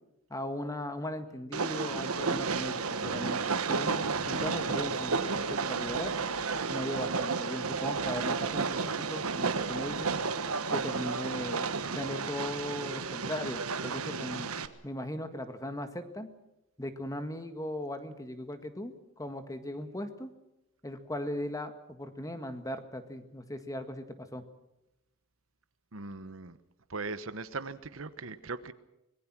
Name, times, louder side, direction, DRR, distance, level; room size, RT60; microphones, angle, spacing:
voice 1, 0.3-6.1 6.7-10.1 10.7-14.5 14.8-16.3 16.8-20.3 20.8-24.4, left 1 dB, 15° left, 8 dB, 1.7 m, -38 dB
Train, 1.5-14.7, right 4 dB, 85° right, 1.3 m, -32 dB
voice 2, 25.9-26.6 26.9-28.7, right 3 dB, 65° right, 13 dB, 1.1 m, -39 dB
25.5 x 20.0 x 6.1 m, 0.91 s
head